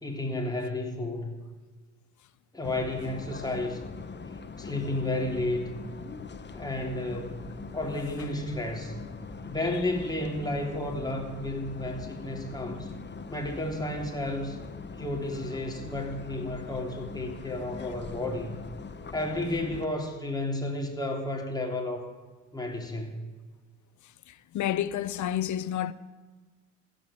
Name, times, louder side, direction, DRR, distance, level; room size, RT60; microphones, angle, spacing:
voice 1, 0.0-1.4 2.5-3.9 4.3-6.0 6.5-9.0 9.5-12.9 13.3-14.6 15.0-18.7 19.1-22.1 22.5-23.2, left 1 dB, 10° left, 3.4 m, -32 dB
sound 1, 2.6-19.9, left 4 dB, 30° left, 1.2 m, -42 dB
voice 2, 17.6-18.0 24.0-25.9, left 11 dB, 60° left, 0.8 m, -31 dB
15.0 x 8.0 x 9.0 m
hypercardioid pair, 50°, 33 cm